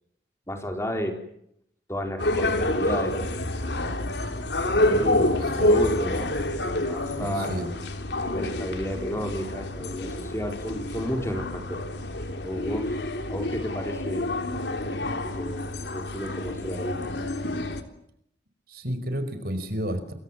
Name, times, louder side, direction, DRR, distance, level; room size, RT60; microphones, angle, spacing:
voice 1, 0.5-1.2 1.9-3.5 4.6-6.3 6.6-7.6 8.2-11.8 12.4-12.9 13.3-14.4 15.2-17.0, equal, 15° left, 4 dB, 4.4 m, -32 dB
sound 1, 2.2-17.8, left 1 dB, 75° left, 3.3 m, -28 dB
voice 2, 7.2-7.7 18.7-20.1, equal, 55° right, 10 dB, 5.3 m, -31 dB
28.5 x 24.0 x 7.5 m, 0.72 s
head